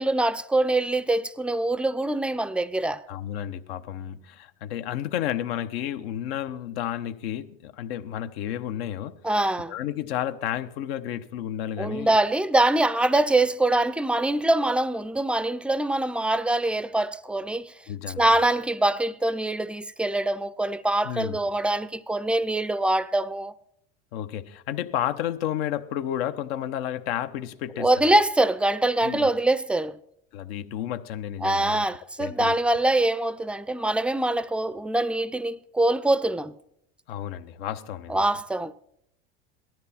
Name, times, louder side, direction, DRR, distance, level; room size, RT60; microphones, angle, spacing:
voice 1, 0.0-3.0 9.2-9.7 11.8-17.7 18.2-23.5 27.8-30.0 31.4-36.6 38.1-38.7, right 2 dB, 5° right, 0.4 m, -24 dB
voice 2, 3.1-9.2 9.7-12.1 17.9-18.3 21.0-21.4 24.1-27.9 29.0-29.3 30.3-31.8 32.2-32.6 37.1-38.3, left 11 dB, 80° left, 1.0 m, -31 dB
18.0 x 12.5 x 4.2 m
supercardioid pair, 110°, 30 cm